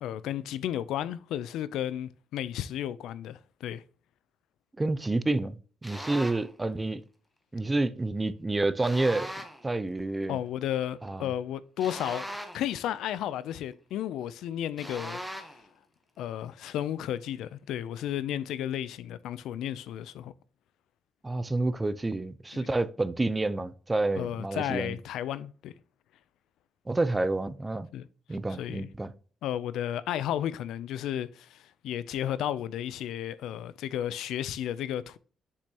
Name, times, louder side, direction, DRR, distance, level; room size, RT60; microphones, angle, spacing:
voice 1, 0.0-3.8 10.3-12.3 12.5-15.2 15.4-15.5 16.2-20.3 22.5-22.7 24.2-25.7 27.9-28.1 28.6-28.9 29.4-35.2, left 11 dB, 85° left, 0.4 m, -33 dB
voice 2, 4.8-7.0 7.5-9.3 9.6-10.4 11.0-11.3 21.2-25.0 26.9-27.9 28.3-29.1, right 2 dB, 20° right, 0.6 m, -29 dB
sound 1, 5.8-6.5 8.8-9.7 11.8-12.8 14.8-15.7, equal, ahead, 1.2 m, -39 dB
6.9 x 5.1 x 2.8 m
cardioid pair, 90°, 0 cm